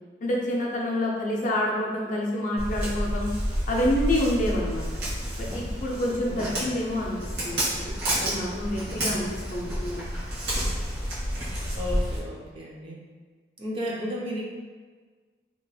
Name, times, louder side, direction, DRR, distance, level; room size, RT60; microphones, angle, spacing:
voice 1, 0.2-3.3 3.7-4.9 5.4-7.2 7.4-7.9 8.2-10.0, left 1 dB, 45° left, -2 dB, 0.5 m, -28 dB
Walk footsteps, 2.6-12.2, equal, 70° right, 1.2 m, -30 dB
voice 2, 6.3-6.7 11.8-13.0 13.6-14.4, equal, 30° right, -4 dB, 0.5 m, -34 dB
2.9 x 2.8 x 2.3 m, 1.4 s
head